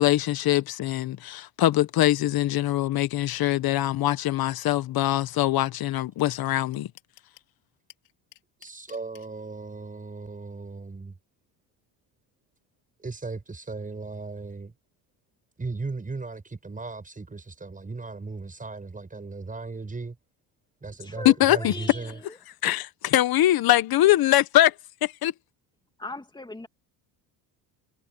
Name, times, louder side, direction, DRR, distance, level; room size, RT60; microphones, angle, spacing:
voice 1, 0.0-6.9 21.2-21.7 22.6-24.7 25.0-25.3, left 14 dB, 55° left, 1.3 m, -22 dB
sound 1, 5.8-5.9 6.2-6.3 6.5-7.5 7.9-9.3, left 21 dB, 90° left, 3.5 m, -52 dB
voice 2, 8.6-11.2 13.0-14.7 15.6-20.2 20.8-22.2, right 3 dB, 20° right, 7.6 m, -37 dB
voice 3, 21.0-22.4 22.6-22.8 26.0-26.7, left 2 dB, 10° left, 2.6 m, -39 dB
cardioid pair, 110°, 44 cm